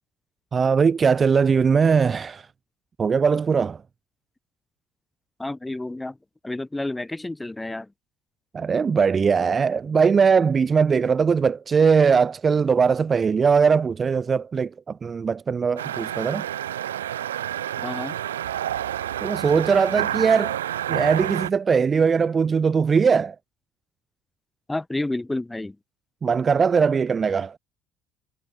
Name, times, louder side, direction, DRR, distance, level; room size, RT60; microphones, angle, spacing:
voice 1, 0.5-2.5 3.0-3.8 8.5-16.4 19.2-20.5 20.9-23.3 26.2-27.6, right 6 dB, 30° right, 1.3 m, -20 dB
voice 2, 5.4-6.2 6.4-7.9 17.8-18.2 24.7-25.8, left 2 dB, 10° left, 7.3 m, -30 dB
sound 1, 15.8-21.5, right 11 dB, 75° right, 0.6 m, -29 dB
figure-of-eight pair, 55°, 0 cm